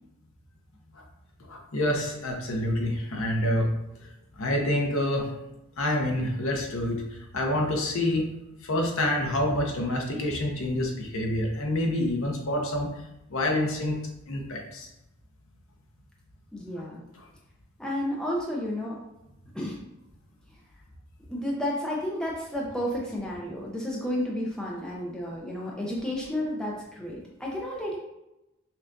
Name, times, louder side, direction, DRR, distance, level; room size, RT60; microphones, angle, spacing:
voice 1, 1.5-3.7 4.4-5.3 5.8-7.0 7.3-8.3 8.6-12.9 13.3-14.0 14.3-14.9, left 1 dB, 70° left, 1 dB, 0.8 m, -27 dB
voice 2, 16.5-17.0 17.8-19.0 19.5-19.8 21.3-28.0, left 1 dB, 5° left, -3 dB, 0.5 m, -31 dB
5.5 x 2.4 x 2.5 m, 0.92 s
head